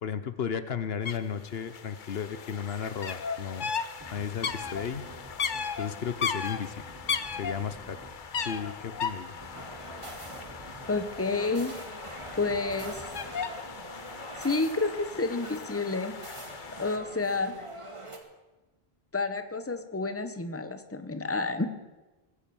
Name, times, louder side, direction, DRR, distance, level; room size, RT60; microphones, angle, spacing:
voice 1, 0.0-3.7 4.1-5.0 5.8-7.0 7.3-9.3, left 7 dB, 75° left, 12 dB, 1.1 m, -34 dB
sound 1, 1.0-1.2 1.4-17.0, left 6 dB, 55° left, 1.0 m, -37 dB
sound 2, 4.0-13.3, right 1 dB, 15° right, 1.6 m, -50 dB
sound 3, 9.5-18.2, right 1 dB, 30° right, 2.1 m, -44 dB
voice 2, 10.9-11.8 12.3-13.0 14.4-16.2 16.8-17.5 19.1-21.7, left 3 dB, 15° left, 9 dB, 1.1 m, -30 dB
20.0 x 10.0 x 7.1 m, 1.1 s
omnidirectional pair, 1.0 m